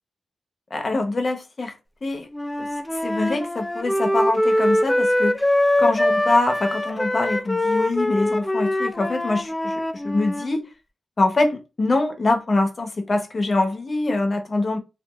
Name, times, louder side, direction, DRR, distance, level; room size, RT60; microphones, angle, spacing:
voice 1, 0.7-2.3 2.6-5.4 5.8-10.7 11.2-14.8, left 2 dB, 45° left, 0.7 m, -24 dB
Wind instrument woodwind instrument, 2.3-10.5, left 1 dB, 10° left, 0.4 m, -23 dB
2.9 x 2.3 x 2.3 m
cardioid pair, 80°, 0 cm